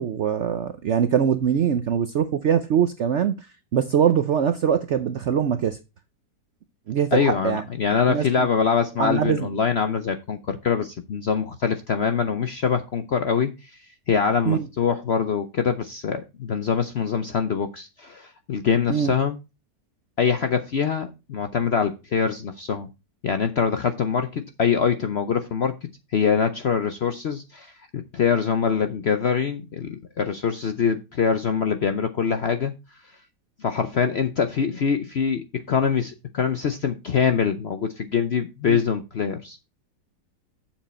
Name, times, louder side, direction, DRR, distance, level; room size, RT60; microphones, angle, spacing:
voice 1, 0.0-3.3 3.7-5.8 6.9-7.6 8.1-8.5 9.0-9.4 14.5-14.6 18.9-19.1 38.7-38.8, right 8 dB, 65° right, 0.7 m, -22 dB
voice 2, 7.1-13.7 14.1-19.4 20.2-22.9 23.2-25.7 26.1-29.9 30.2-32.7 33.6-39.6, left 6 dB, 60° left, 0.7 m, -24 dB
7.5 x 7.1 x 4.2 m
omnidirectional pair, 1.8 m